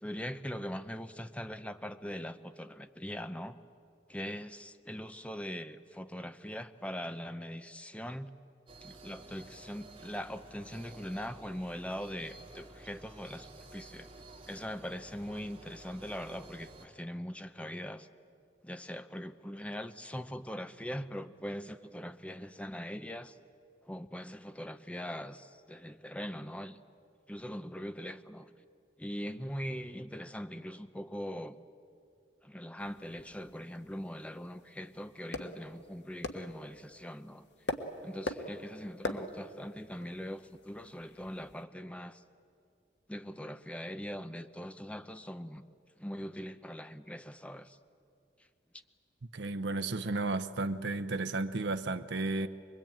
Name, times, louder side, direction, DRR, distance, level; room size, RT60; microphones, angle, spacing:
voice 1, 0.0-3.6 4.1-8.3 8.8-14.1 14.5-18.1 18.6-23.4 23.9-26.8 27.3-28.5 29.0-31.6 32.4-37.4 38.0-42.2 43.1-45.6 46.0-47.8, equal, 5° left, 0.8 m, -41 dB
sound 1, 8.7-16.9, right 2 dB, 30° right, 3.1 m, -52 dB
sound 2, 32.8-41.6, left 2 dB, 85° left, 1.6 m, -43 dB
voice 2, 49.3-52.5, right 2 dB, 80° right, 0.8 m, -33 dB
24.0 x 22.5 x 8.9 m
head